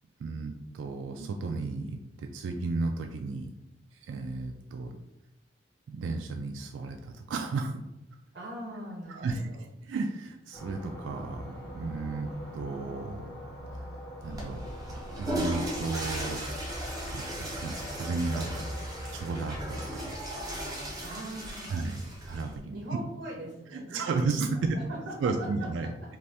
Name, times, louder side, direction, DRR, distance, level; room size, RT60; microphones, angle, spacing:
voice 1, 0.2-3.5 4.1-4.9 5.9-7.8 9.1-9.4 9.8-13.3 13.7-13.8 14.2-14.6 14.9-16.4 17.1-18.6 19.1-19.8 21.7-22.8 23.7-24.8 25.2-25.9, right 3 dB, 85° right, 5 dB, 0.3 m, -33 dB
voice 2, 8.3-9.6 21.0-21.7 22.7-25.3 25.6-25.9, right 1 dB, 55° right, -3 dB, 0.6 m, -41 dB
sound 1, 10.5-20.1, equal, 60° left, 1.0 m, -42 dB
Water / Toilet flush, 14.2-22.6, right 1 dB, 20° right, 0.8 m, -37 dB
2.6 x 2.6 x 3.3 m, 0.89 s
head